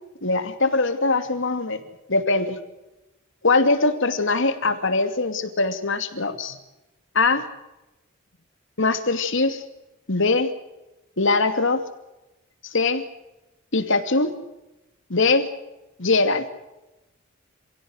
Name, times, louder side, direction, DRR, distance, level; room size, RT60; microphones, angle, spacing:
voice 1, 0.2-1.8 2.1-2.6 3.4-6.6 7.1-7.4 8.8-9.6 10.1-10.5 11.2-11.8 12.7-13.0 13.7-14.3 15.1-15.5 16.0-16.4, left 3 dB, 65° left, 9 dB, 2.7 m, -21 dB
27.5 x 16.5 x 8.0 m, 0.98 s
head